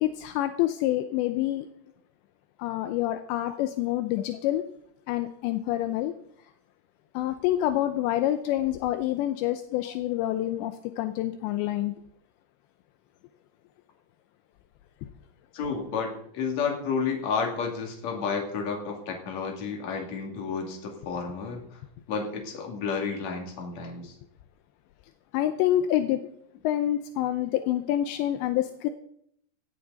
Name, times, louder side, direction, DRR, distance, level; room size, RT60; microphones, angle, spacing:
voice 1, 0.0-1.7 2.6-4.6 5.1-6.1 7.1-11.9 25.3-26.3 26.6-28.9, left 13 dB, 80° left, 9 dB, 2.8 m, -27 dB
voice 2, 15.5-21.8 22.1-24.1 27.6-27.8, left 5 dB, 45° left, 2 dB, 3.1 m, -31 dB
17.0 x 13.0 x 4.0 m, 0.69 s
omnidirectional pair, 5.3 m